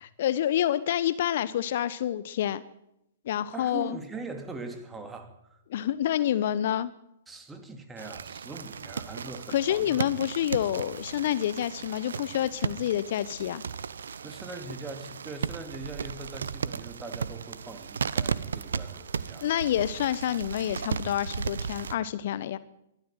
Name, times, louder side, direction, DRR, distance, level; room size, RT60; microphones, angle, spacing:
voice 1, 0.2-2.6 3.2-4.0 5.7-6.9 9.5-13.6 19.4-22.6, left 11 dB, 50° left, 16 dB, 0.9 m, -28 dB
voice 2, 3.5-5.6 7.3-10.0 14.2-19.4, right 3 dB, 10° right, 6 dB, 3.0 m, -41 dB
sound 1, 8.0-21.9, right 6 dB, 65° right, 1.0 m, -35 dB
22.5 x 13.0 x 9.2 m, 0.84 s
figure-of-eight pair, 115°, 0 cm